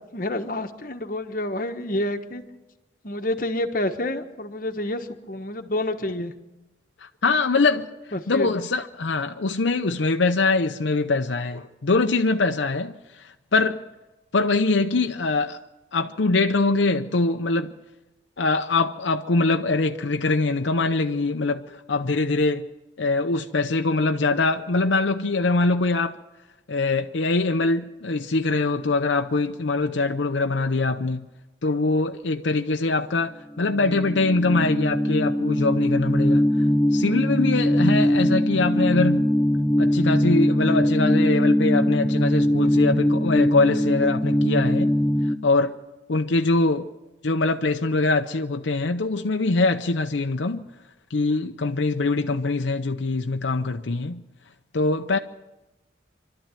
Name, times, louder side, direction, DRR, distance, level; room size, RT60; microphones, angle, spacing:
voice 1, 0.1-2.4 3.0-6.3 8.1-8.5, left 1 dB, 45° left, 1.3 m, -28 dB
voice 2, 7.0-7.9 8.3-12.9 13.5-13.8 14.3-15.6 15.9-17.7 18.4-22.7 23.0-26.2 26.7-31.3 31.6-33.3 33.6-36.4 36.9-39.2 39.8-44.9 45.4-45.7 46.1-46.9 47.2-50.6 51.1-54.2 54.7-55.2, left 3 dB, 75° left, 0.7 m, -23 dB
sound 1, 33.7-45.4, equal, 5° left, 0.6 m, -21 dB
25.0 x 12.5 x 9.1 m
head